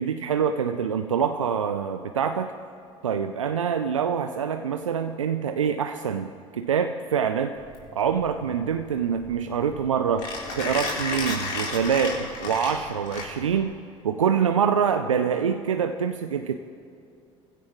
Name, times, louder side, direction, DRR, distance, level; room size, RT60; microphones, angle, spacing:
voice 1, 0.0-2.5 3.0-7.6 7.9-10.3 10.6-13.7 14.0-16.6, right 7 dB, 90° right, 8 dB, 0.5 m, -25 dB
Mechanisms, 7.6-13.7, left 3 dB, 60° left, 4.0 m, -33 dB
25.0 x 16.0 x 3.1 m, 2.5 s
hypercardioid pair, 65°, 16 cm